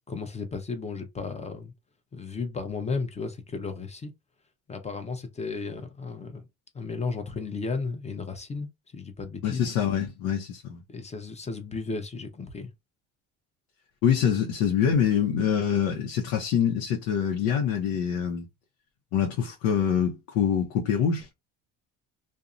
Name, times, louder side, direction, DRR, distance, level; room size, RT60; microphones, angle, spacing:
voice 1, 0.1-1.7 2.1-4.1 4.7-6.5 6.7-9.7 10.9-12.7, left 4 dB, 20° left, 0.6 m, -34 dB
voice 2, 9.4-10.8 14.0-18.5 19.1-21.3, left 8 dB, 85° left, 0.6 m, -25 dB
2.6 x 2.0 x 2.4 m
cardioid pair, 105°, 32 cm